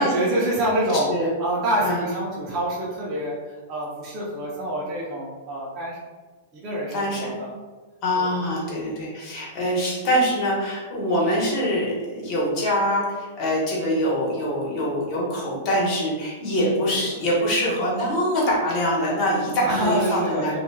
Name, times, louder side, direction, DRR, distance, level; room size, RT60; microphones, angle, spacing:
voice 1, 0.0-1.1 1.4-6.0 6.5-7.5 8.1-8.3 16.8-17.0 19.6-20.6, right 1 dB, 35° right, -6 dB, 0.6 m, -26 dB
voice 2, 6.9-7.4 8.0-20.5, equal, 40° left, -5 dB, 1.2 m, -24 dB
2.8 x 2.4 x 2.3 m, 1.3 s
hypercardioid pair, 130°, 0 cm